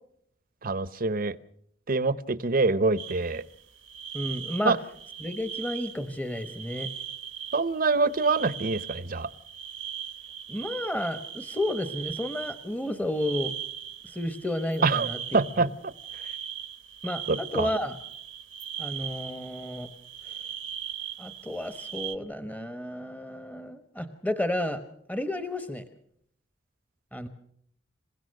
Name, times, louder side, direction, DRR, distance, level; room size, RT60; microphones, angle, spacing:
voice 1, 0.6-1.4 1.9-3.4 4.6-4.8 7.5-9.3 14.8-15.7 17.3-17.7, right 3 dB, 50° right, 16 dB, 0.9 m, -25 dB
sound 1, 3.0-22.2, right 10 dB, 70° right, 1.0 m, -39 dB
voice 2, 4.1-4.7 5.2-6.9 10.5-13.5 14.0-15.2 15.6-15.7 17.0-18.0 18.8-19.9 21.2-24.8 25.1-25.8 27.1-27.3, left 1 dB, 10° left, 9 dB, 1.1 m, -32 dB
27.5 x 16.5 x 6.5 m, 0.69 s
head